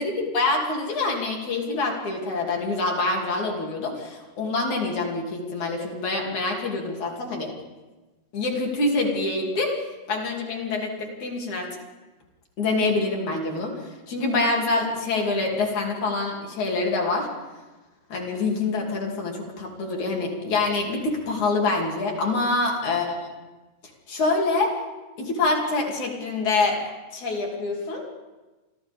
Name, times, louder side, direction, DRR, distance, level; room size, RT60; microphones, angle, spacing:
voice 1, 0.0-7.5 8.3-9.8 10.1-11.7 12.6-17.3 18.1-23.1 24.1-24.7 25.2-28.1, left 3 dB, 50° left, -1 dB, 3.8 m, -26 dB
29.0 x 25.0 x 3.6 m, 1.2 s
omnidirectional pair, 4.8 m